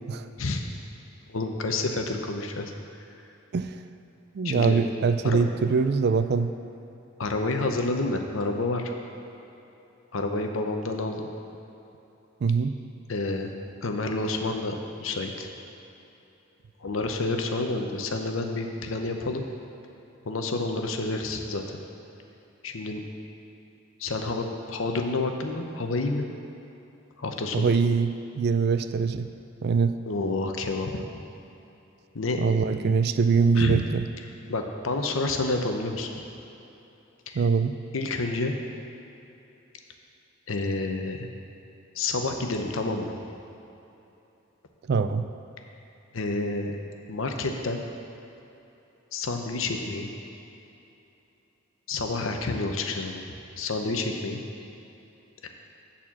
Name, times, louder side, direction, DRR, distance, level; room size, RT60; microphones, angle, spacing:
voice 1, 1.3-2.7 4.4-4.7 5.2-5.4 7.2-8.9 10.1-11.3 13.1-13.5 13.8-15.5 16.8-19.4 20.2-21.8 22.6-23.0 24.0-26.3 27.2-27.7 30.1-31.0 32.1-32.5 33.6-33.8 34.5-36.1 37.3-37.4 37.9-38.5 40.5-41.3 41.9-43.1 46.1-46.7 47.1-47.8 49.1-50.1 51.9-53.2 53.6-54.4 55.4-55.5, left 3 dB, 75° left, 4 dB, 0.8 m, -29 dB
voice 2, 4.3-6.5 12.4-12.7 27.5-29.3 29.6-30.0 32.4-34.0 37.3-37.7 44.9-45.2, right 5 dB, 55° right, 11 dB, 0.3 m, -23 dB
8.7 x 4.3 x 7.1 m, 3.0 s
head